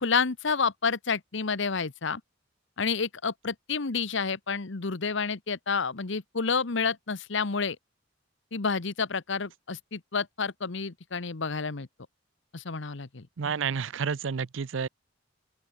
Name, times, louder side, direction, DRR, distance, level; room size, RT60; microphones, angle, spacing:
voice 1, 0.0-2.2 2.8-7.8 8.5-11.9 12.5-13.3, left 5 dB, 65° left, 1.1 m, -29 dB
voice 2, 13.4-14.9, right 6 dB, 70° right, 0.5 m, -30 dB
open air
head